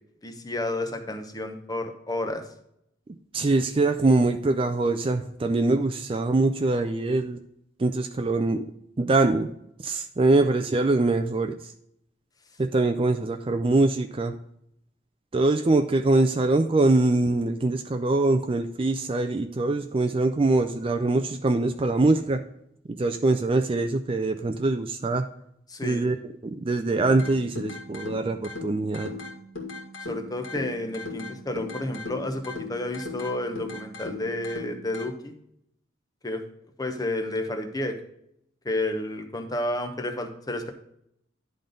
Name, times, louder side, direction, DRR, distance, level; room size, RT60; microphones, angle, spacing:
voice 1, 0.2-2.4 25.7-26.1 30.1-35.3 36.2-36.4 36.8-38.0 38.6-40.7, left 1 dB, 20° left, 6 dB, 0.8 m, -31 dB
voice 2, 3.3-7.4 7.8-8.6 9.0-9.5 9.8-11.7 12.6-14.4 15.3-22.4 22.9-25.3 25.8-26.2 26.4-29.1, right 2 dB, 25° right, 8 dB, 0.4 m, -23 dB
sound 1, 27.1-35.1, left 3 dB, 85° left, 2.1 m, -38 dB
10.5 x 3.9 x 5.1 m, 0.75 s
head